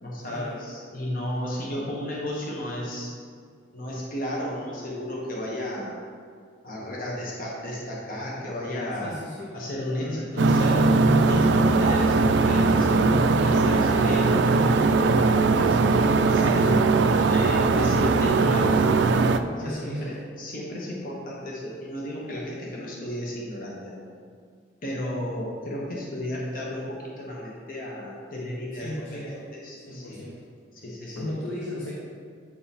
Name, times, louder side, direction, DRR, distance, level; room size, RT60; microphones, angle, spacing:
voice 1, 0.0-3.1 3.7-6.0 6.6-9.1 9.5-10.8 11.3-15.8 16.3-19.2 19.5-24.1 24.8-30.2 30.7-31.3, left 1 dB, 45° left, -4 dB, 1.1 m, -33 dB
voice 2, 9.0-9.5 9.8-10.5 19.6-20.1 28.7-29.5 29.8-30.4 31.2-31.9, left 1 dB, 85° left, -5 dB, 0.9 m, -35 dB
sound 1, 10.4-19.4, right 3 dB, 65° right, 0.3 m, -20 dB
8.6 x 3.8 x 4.2 m, 2.1 s
head